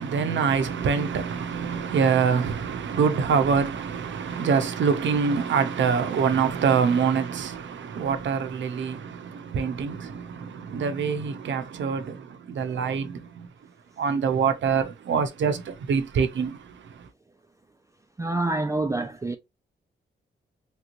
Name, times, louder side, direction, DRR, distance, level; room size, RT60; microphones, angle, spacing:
voice 1, 0.0-13.5 14.0-17.1, right 6 dB, 75° right, 0.7 m, -25 dB
voice 2, 18.2-19.4, right 2 dB, 15° right, 0.4 m, -27 dB
3.4 x 3.0 x 2.5 m
cardioid pair, 70°, 20 cm